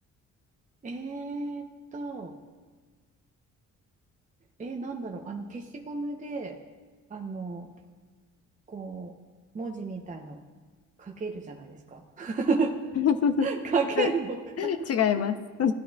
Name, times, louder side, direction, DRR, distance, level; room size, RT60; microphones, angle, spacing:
voice 1, 0.8-1.7 1.9-2.3 4.6-6.5 7.1-7.7 8.7-9.1 9.5-10.4 11.0-12.8 13.4-14.7, right 4 dB, 25° right, 2 dB, 0.7 m, -32 dB
voice 2, 13.0-13.5 14.0-14.1 14.6-15.7, left 8 dB, 55° left, 9 dB, 0.7 m, -25 dB
16.0 x 10.0 x 2.3 m, 1.4 s
cardioid pair, 90°, 30 cm